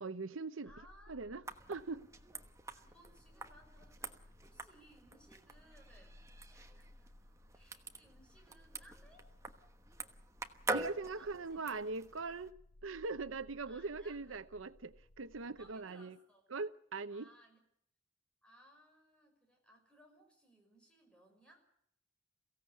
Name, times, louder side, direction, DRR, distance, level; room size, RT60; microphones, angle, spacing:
voice 1, 0.0-0.7 1.1-1.4 1.7-2.1 10.7-12.5 12.8-16.2 16.5-17.3, right 3 dB, 85° right, 0.8 m, -41 dB
voice 2, 0.6-2.0 2.7-9.3 11.2-11.8 13.7-14.4 15.4-16.5 17.1-17.6 18.4-21.7, equal, 5° left, 5.9 m, -64 dB
sound 1, 0.7-15.8, left 1 dB, 65° left, 1.3 m, -62 dB
sound 2, 1.4-12.5, right 2 dB, 15° right, 1.2 m, -46 dB
23.0 x 16.0 x 8.4 m
head